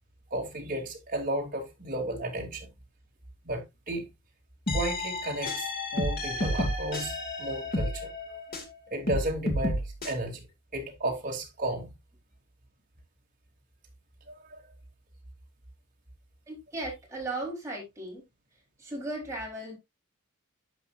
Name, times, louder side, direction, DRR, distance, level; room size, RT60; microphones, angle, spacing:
voice 1, 0.3-2.7 3.4-4.1 4.7-8.1 8.9-10.4 10.7-11.9 14.3-14.6, right 1 dB, 40° right, 3.2 m, -33 dB
sound 1, 4.7-8.7 9.1-10.1, left 1 dB, 40° left, 2.4 m, -31 dB
voice 2, 16.5-18.2 18.8-19.8, right 2 dB, 15° right, 4.1 m, -36 dB
11.5 x 7.6 x 2.6 m
head